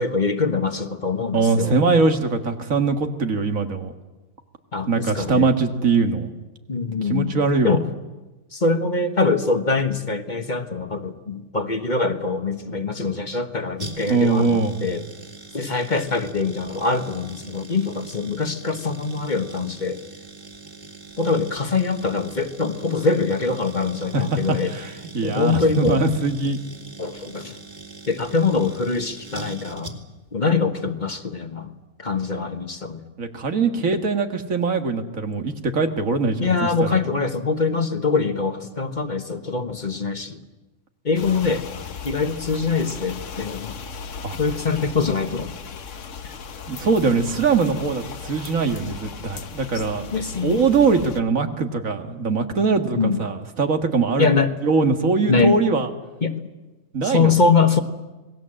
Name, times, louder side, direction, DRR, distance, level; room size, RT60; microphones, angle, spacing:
voice 1, 0.0-1.8 4.7-5.5 6.7-7.4 7.6-7.8 8.5-15.0 15.5-20.0 21.2-24.7 25.2-26.0 27.0-27.6 28.1-30.0 30.3-33.0 36.4-40.4 41.0-41.7 42.0-43.8 44.4-45.5 50.1-50.6 53.0-53.2 54.2-54.5 55.3-55.6 56.2-56.3 57.0-57.8, left 4 dB, 35° left, 8 dB, 1.3 m, -23 dB
voice 2, 1.3-3.9 4.9-6.3 7.1-7.8 14.1-14.9 24.1-26.6 33.2-37.0 44.2-44.4 46.7-50.1 50.4-54.3 54.6-55.9 56.9-57.3, right 4 dB, 90° right, 6 dB, 2.1 m, -22 dB
sound 1, 13.8-30.3 30.5-30.6, right 2 dB, 40° right, 2.6 m, -41 dB
sound 2, 41.1-51.2, left 5 dB, 70° left, 1.4 m, -37 dB
27.0 x 20.0 x 7.7 m, 1.2 s
omnidirectional pair, 1.4 m